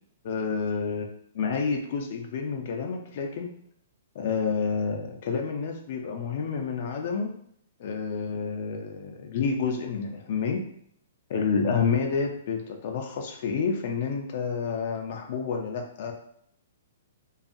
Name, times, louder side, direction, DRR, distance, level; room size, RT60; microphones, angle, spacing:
voice 1, 0.2-1.1 1.3-3.5 4.2-7.3 7.8-10.6 11.3-16.1, left 5 dB, 50° left, 2 dB, 0.4 m, -29 dB
2.7 x 2.3 x 2.5 m, 0.68 s
hypercardioid pair, 155°, 0 cm